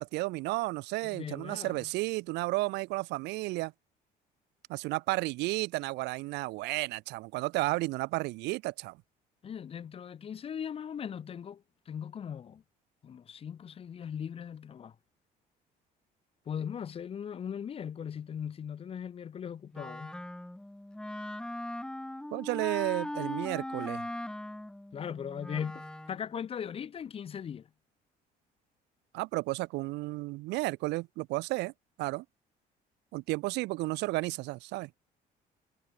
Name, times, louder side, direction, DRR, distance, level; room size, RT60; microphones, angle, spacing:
voice 1, 0.0-3.7 4.7-9.0 22.3-24.1 29.1-31.7 32.0-32.2 33.1-34.9, right 21 dB, 90° right, 0.7 m, -32 dB
voice 2, 1.0-1.8 9.4-12.6 13.0-14.9 16.5-20.2 24.9-27.7, left 8 dB, 35° left, 0.6 m, -39 dB
Wind instrument woodwind instrument, 19.7-26.3, left 1 dB, 5° left, 0.8 m, -39 dB
cardioid pair, 110°, 17 cm